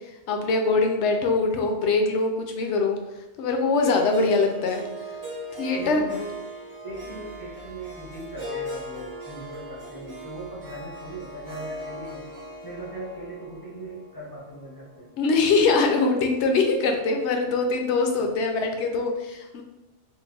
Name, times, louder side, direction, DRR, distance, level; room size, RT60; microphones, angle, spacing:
voice 1, 0.3-3.0 3.4-4.8 5.6-6.0 15.2-19.6, left 3 dB, 75° left, 3 dB, 0.8 m, -23 dB
Harp, 3.8-16.0, equal, 50° right, 1.2 m, -39 dB
voice 2, 5.8-6.4 6.8-12.3 12.6-15.1 18.2-18.3, right 1 dB, 30° left, -3 dB, 0.4 m, -39 dB
4.5 x 2.1 x 2.3 m, 1.0 s
omnidirectional pair, 1.2 m